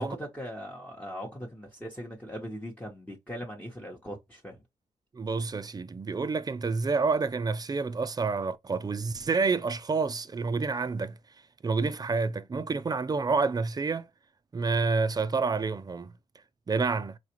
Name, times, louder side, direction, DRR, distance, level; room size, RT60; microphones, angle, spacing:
voice 1, 0.0-4.6, equal, 10° left, 0.9 m, -40 dB
voice 2, 5.1-11.2 11.6-14.1 14.5-16.1 16.7-17.2, right 4 dB, 30° right, 0.4 m, -28 dB
4.1 x 2.4 x 2.9 m
cardioid pair, 70°, 14 cm